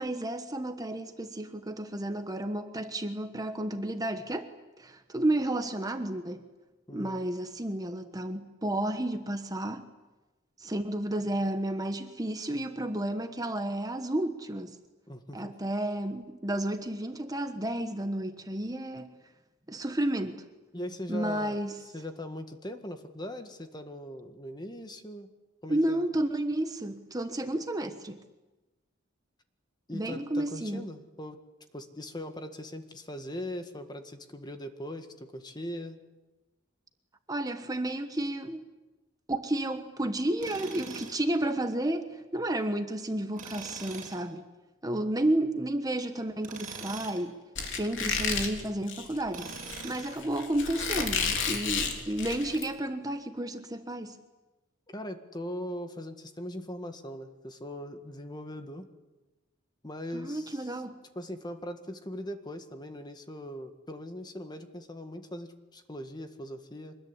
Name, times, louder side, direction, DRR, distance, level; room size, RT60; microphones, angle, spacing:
voice 1, 0.0-4.5 4.8-6.4 6.9-9.9 10.6-14.8 15.3-19.2 19.7-20.4 21.1-21.8 25.7-28.2 29.9-30.9 37.3-38.7 39.3-44.5 44.8-47.4 47.7-49.5 49.8-54.2 60.1-61.0, right 1 dB, 20° right, 1.2 m, -32 dB
voice 2, 6.9-7.2 15.1-15.5 20.7-21.6 21.9-25.3 25.6-26.0 29.9-31.4 31.7-36.0 45.0-45.1 54.9-58.9 59.8-60.7 61.2-67.0, left 1 dB, 20° left, 1.8 m, -40 dB
Tools, 40.4-41.3 43.3-44.2 46.4-47.3 49.3-50.2, right 4 dB, 40° right, 7.9 m, -42 dB
Squeak, 47.5-52.6, left 5 dB, 60° left, 3.7 m, -32 dB
25.0 x 21.0 x 9.9 m
head